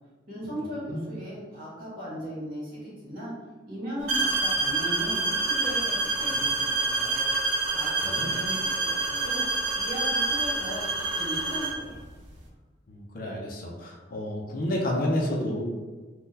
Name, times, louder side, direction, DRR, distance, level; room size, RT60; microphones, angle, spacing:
voice 1, 0.3-3.3 3.7-7.2 7.7-12.0, equal, 50° right, -7 dB, 1.4 m, -37 dB
sound 1, 4.1-11.8, right 3 dB, 80° right, 0.7 m, -27 dB
voice 2, 8.0-8.4 12.9-15.6, left 1 dB, 50° left, 0 dB, 0.5 m, -30 dB
3.7 x 2.3 x 2.7 m, 1.3 s
head